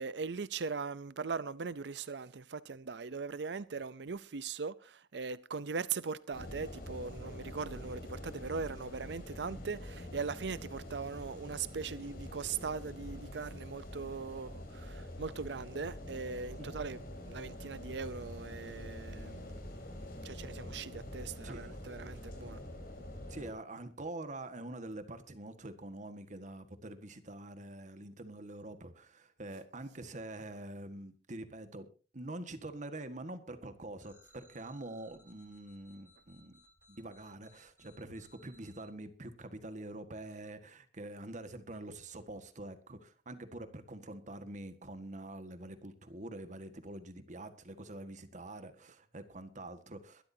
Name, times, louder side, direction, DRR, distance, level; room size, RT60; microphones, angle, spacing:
voice 1, 0.0-17.0 17.3-19.6 20.2-22.6, right 5 dB, 75° right, 0.6 m, -40 dB
sound 1, 6.3-23.5, left 1 dB, 60° left, 5.3 m, -46 dB
voice 2, 21.4-21.9 22.1-22.9 23.3-31.9 32.1-36.6 36.9-50.2, right 2 dB, 45° right, 1.6 m, -45 dB
sound 2, 34.0-38.8, equal, 15° right, 3.2 m, -64 dB
22.5 x 12.5 x 2.8 m
head